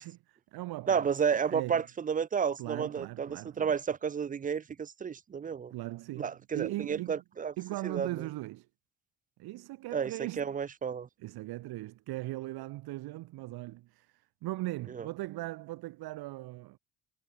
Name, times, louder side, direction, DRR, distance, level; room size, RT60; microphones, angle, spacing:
voice 1, 0.0-1.1 1.4-1.9 2.6-3.8 5.7-7.2 7.6-8.7 9.4-10.5 11.2-16.8, right 18 dB, 70° right, 4.9 m, -39 dB
voice 2, 0.9-5.7 6.2-7.5 7.8-8.1 9.9-10.1 10.4-11.1 14.9-15.1, right 7 dB, 20° right, 0.5 m, -31 dB
hypercardioid pair, 55°, 39 cm